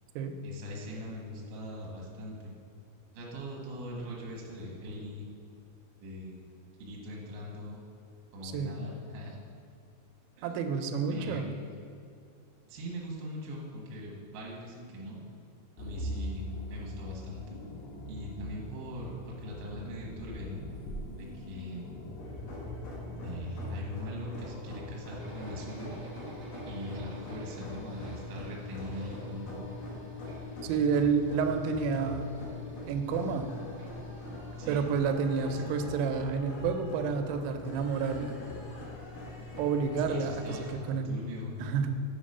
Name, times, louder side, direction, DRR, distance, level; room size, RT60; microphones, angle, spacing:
voice 1, 0.4-2.5 3.1-5.3 6.0-6.5 6.8-7.8 8.3-9.4 10.4-10.5 11.1-11.5 12.7-15.2 15.8-17.6 18.1-20.7 21.1-21.9 23.2-26.0 26.7-29.7 34.6-34.8 35.4-35.8 40.1-41.6, equal, 75° right, -3 dB, 1.9 m, -41 dB
voice 2, 8.4-8.8 10.4-11.4 30.6-32.3 32.9-33.5 34.7-38.3 39.6-41.2 41.6-42.0, right 5 dB, 90° right, 7 dB, 3.3 m, -30 dB
sound 1, 15.8-23.9, equal, 85° left, 3.5 m, -41 dB
sound 2, 22.2-40.7, left 1 dB, 60° left, 2.3 m, -43 dB
sound 3, 25.2-34.8, left 2 dB, 60° right, 1.7 m, -48 dB
8.2 x 3.5 x 5.3 m, 2.5 s
omnidirectional pair, 5.9 m